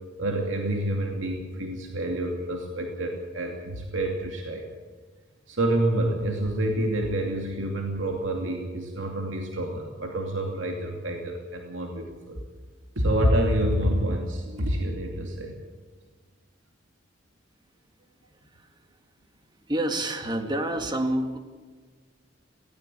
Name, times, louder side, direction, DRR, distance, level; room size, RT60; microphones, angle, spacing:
voice 1, 0.2-4.7 5.5-12.4 13.0-15.6, right 1 dB, 85° right, 1 dB, 2.6 m, -27 dB
voice 2, 18.3-18.9 19.6-21.4, right 1 dB, 25° right, 6 dB, 2.0 m, -29 dB
17.5 x 17.5 x 8.6 m, 1.4 s
head